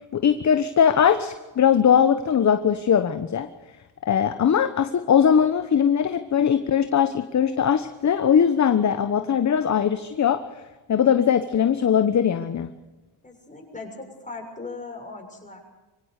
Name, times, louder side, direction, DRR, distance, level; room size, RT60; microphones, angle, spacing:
voice 1, 0.1-3.5 4.0-10.4 10.9-12.7, left 8 dB, 40° left, 10 dB, 1.2 m, -20 dB
voice 2, 13.2-15.6, left 3 dB, 15° left, 2 dB, 6.9 m, -38 dB
24.0 x 17.0 x 6.7 m, 1.1 s
supercardioid pair, 85°, 45 cm